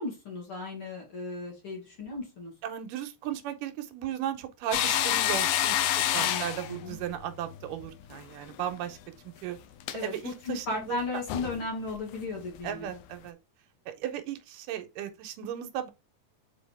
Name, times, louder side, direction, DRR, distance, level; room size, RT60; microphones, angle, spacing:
voice 1, 0.0-2.5 6.2-7.0 9.9-12.9, left 3 dB, 45° left, 2.5 m, -36 dB
voice 2, 2.6-9.0 9.4-9.6 9.9-11.0 12.6-13.4 13.9-15.9, right 10 dB, 85° right, 2.4 m, -36 dB
sound 1, 4.7-8.2 8.5-8.7 9.8-10.0 11.0-11.1 11.3-11.6 11.9-12.0 12.6-12.7, left 12 dB, 90° left, 2.4 m, -28 dB
6.9 x 4.1 x 3.4 m
omnidirectional pair, 3.8 m